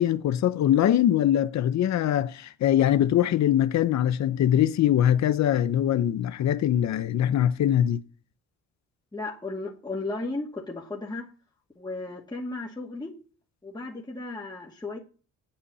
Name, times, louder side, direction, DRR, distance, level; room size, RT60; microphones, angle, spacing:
voice 1, 0.0-8.0, left 11 dB, 65° left, 0.9 m, -22 dB
voice 2, 9.1-11.3 11.8-13.1 13.6-15.0, left 2 dB, 15° left, 2.3 m, -35 dB
8.5 x 8.4 x 8.3 m
cardioid pair, 90°, 30 cm